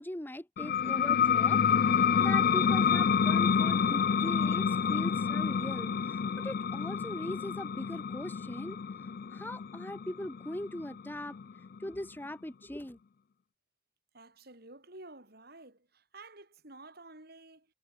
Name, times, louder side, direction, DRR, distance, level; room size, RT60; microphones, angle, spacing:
voice 1, 0.0-8.8 9.3-11.4 11.8-13.0, left 1 dB, 10° left, 1.0 m, -40 dB
sound 1, 0.6-11.8, left 7 dB, 50° left, 0.4 m, -28 dB
voice 2, 14.1-17.7, right 2 dB, 55° right, 7.6 m, -51 dB
head